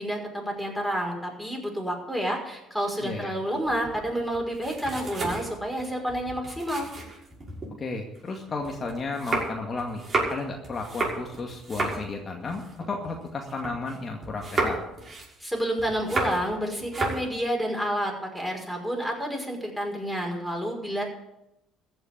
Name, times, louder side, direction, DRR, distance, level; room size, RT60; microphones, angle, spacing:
voice 1, 0.0-6.9 15.4-21.0, equal, ahead, 0 dB, 5.7 m, -29 dB
voice 2, 3.0-3.3 7.8-10.0 10.3-14.8, left 3 dB, 35° left, 2 dB, 2.1 m, -33 dB
sound 1, 3.6-7.7 8.1-14.0 14.2-16.6 16.8-17.3, right 2 dB, 30° right, 6.0 m, -32 dB
15.0 x 6.6 x 9.9 m, 0.88 s
hypercardioid pair, 65°, 0 cm